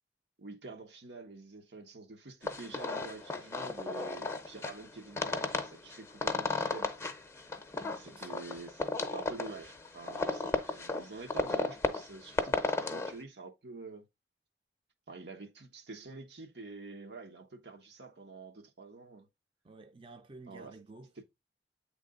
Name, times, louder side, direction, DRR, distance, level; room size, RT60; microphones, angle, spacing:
voice 1, 0.4-7.1 8.0-14.1 15.1-19.3 20.5-20.8, right 3 dB, 80° right, 1.2 m, -47 dB
sound 1, 2.4-13.1, left 3 dB, 15° left, 0.7 m, -35 dB
voice 2, 7.7-8.4 19.6-21.1, right 3 dB, 30° right, 0.6 m, -52 dB
8.5 x 3.4 x 3.7 m
head